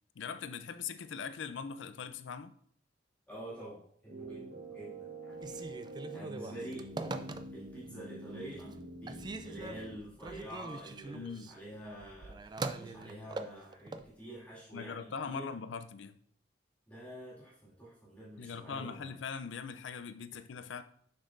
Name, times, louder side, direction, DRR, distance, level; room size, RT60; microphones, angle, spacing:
voice 1, 0.2-2.5 11.1-11.5 14.7-16.2 18.4-20.8, left 6 dB, 75° left, 0.4 m, -41 dB
voice 2, 3.3-5.7 6.1-6.9 7.5-15.5 16.9-19.1, right 1 dB, 10° left, 2.1 m, -47 dB
sound 1, 4.1-10.0, right 2 dB, 75° right, 1.2 m, -46 dB
Telephone, 5.3-7.8 8.3-8.8 9.1-14.1, right 3 dB, 25° right, 0.3 m, -42 dB
7.0 x 5.4 x 2.5 m
head